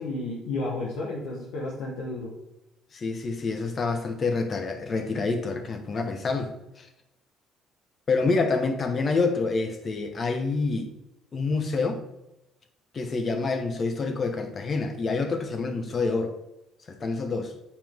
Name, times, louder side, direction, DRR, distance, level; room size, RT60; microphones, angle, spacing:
voice 1, 0.0-2.3, left 2 dB, 80° left, -4 dB, 1.5 m, -32 dB
voice 2, 2.9-6.9 8.1-10.9 11.3-12.0 12.9-16.4 17.0-17.5, left 3 dB, 40° left, 6 dB, 1.2 m, -27 dB
7.4 x 4.6 x 3.7 m, 0.90 s
supercardioid pair, 65°, 0 cm